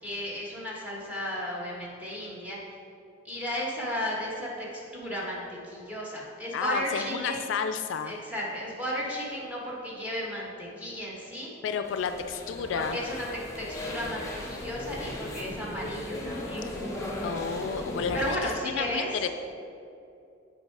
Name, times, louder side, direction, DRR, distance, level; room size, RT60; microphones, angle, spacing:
voice 1, 0.0-2.6 3.2-7.4 8.0-11.5 12.7-16.7 18.1-19.2, equal, 10° right, -4 dB, 1.4 m, -34 dB
voice 2, 6.5-8.1 11.6-13.0 17.0-19.3, left 6 dB, 65° left, 8 dB, 0.3 m, -31 dB
sound 1, 11.8-18.3, left 1 dB, 15° left, 0.9 m, -37 dB
7.9 x 4.6 x 4.7 m, 2.6 s
head